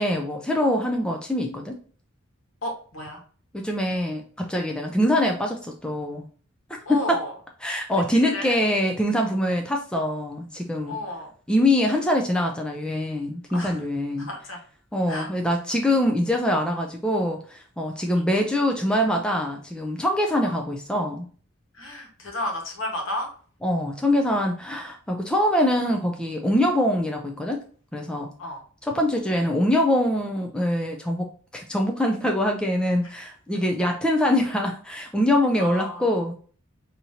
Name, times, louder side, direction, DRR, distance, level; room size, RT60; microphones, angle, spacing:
voice 1, 0.0-1.7 3.5-6.2 6.9-7.2 7.6-11.0 11.5-14.3 14.9-21.3 23.6-27.6 27.9-28.3 28.8-31.3 31.5-36.3, left 1 dB, 5° left, 2 dB, 0.3 m, -24 dB
voice 2, 2.6-3.2 6.8-7.3 8.2-8.6 10.9-11.3 13.5-13.8 14.2-14.6 15.1-15.3 18.1-18.2 20.4-20.5 21.7-23.3 28.4-28.6 35.6-36.1, left 1 dB, 70° left, 1 dB, 1.3 m, -32 dB
5.0 x 2.8 x 2.7 m, 0.42 s
head